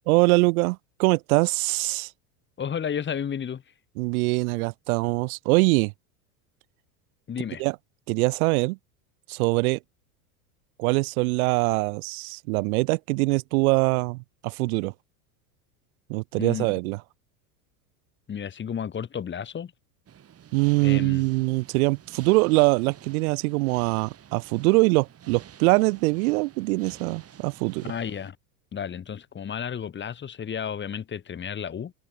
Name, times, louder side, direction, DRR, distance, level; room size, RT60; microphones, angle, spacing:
voice 1, 0.1-2.1 4.0-5.9 7.6-7.8 8.1-8.8 9.3-9.8 10.8-14.9 16.1-17.0 20.5-27.9, right 25 dB, 70° right, 0.7 m, -23 dB
voice 2, 2.6-3.6 7.3-7.6 16.4-16.7 18.3-19.7 20.8-21.3 27.8-28.4 28.7-31.9, left 8 dB, 25° left, 1.7 m, -32 dB
sound 1, 20.1-28.3, right 9 dB, 30° right, 3.2 m, -49 dB
hypercardioid pair, 100°, 45 cm